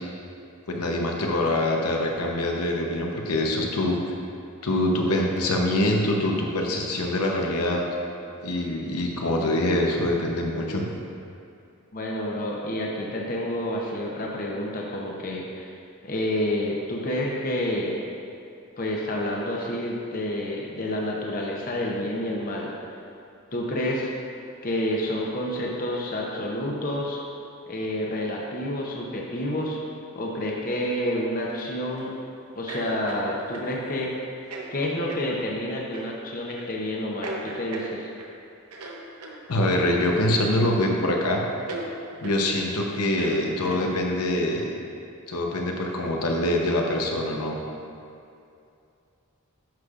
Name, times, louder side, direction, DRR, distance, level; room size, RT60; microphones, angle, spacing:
voice 1, 0.7-4.0 4.6-7.8 8.4-10.8 39.5-41.4 42.2-44.7 45.3-47.6, left 1 dB, 90° left, 0 dB, 0.9 m, -24 dB
voice 2, 11.9-15.8 16.0-18.0 18.8-22.7 23.5-24.1 24.6-27.2 27.7-29.8 30.1-32.2 32.5-34.3 34.7-38.1, left 1 dB, 40° left, -2 dB, 0.8 m, -29 dB
sound 1, 31.5-32.1 32.7-33.7 34.4-34.7 35.1-35.3 35.9-36.1 36.6-36.7 37.2-38.3 38.7-39.4 40.3-40.8 41.1-41.2 41.7-41.9 42.2-42.4 43.0-44.1, right 2 dB, 85° right, 0.8 m, -38 dB
10.5 x 6.4 x 2.5 m, 2.6 s
head